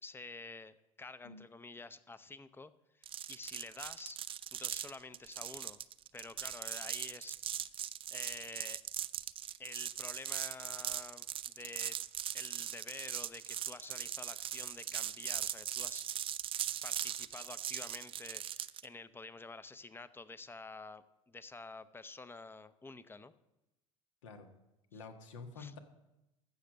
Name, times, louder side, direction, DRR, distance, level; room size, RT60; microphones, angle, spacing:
voice 1, 0.0-4.2 4.5-5.8 6.1-7.4 8.1-8.8 9.6-12.0 12.3-16.0 16.8-23.3 25.6-25.7, left 3 dB, 15° left, 14 dB, 0.7 m, -49 dB
sound 1, 3.0-18.9, right 10 dB, 35° right, 0.5 m, -40 dB
voice 2, 24.9-25.8, left 4 dB, 70° left, 6 dB, 1.5 m, -49 dB
14.5 x 6.7 x 6.6 m, 0.94 s
figure-of-eight pair, 70°, 16 cm